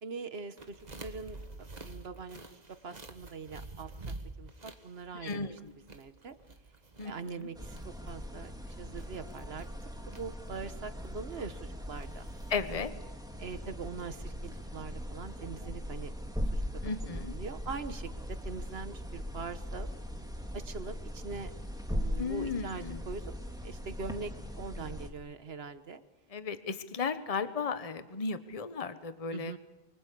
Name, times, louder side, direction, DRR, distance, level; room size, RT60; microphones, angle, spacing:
voice 1, 0.0-1.4 1.8-3.9 4.4-5.5 5.9-6.3 7.0-7.8 8.1-12.3 13.4-16.1 16.5-16.6 17.0-19.9 20.5-21.5 21.9-23.3 23.6-26.0 29.3-29.6, right 4 dB, 75° right, 11 dB, 1.4 m, -42 dB
sound 1, 0.6-12.8, right 2 dB, 40° right, 1.7 m, -49 dB
voice 2, 5.2-5.6 7.0-7.5 12.5-12.9 16.8-17.3 22.2-23.0 26.3-29.5, left 5 dB, 35° left, 11 dB, 1.1 m, -35 dB
sound 2, 7.5-25.1, equal, 5° right, 1.9 m, -40 dB
24.5 x 24.5 x 8.5 m, 1.1 s
omnidirectional pair, 1.0 m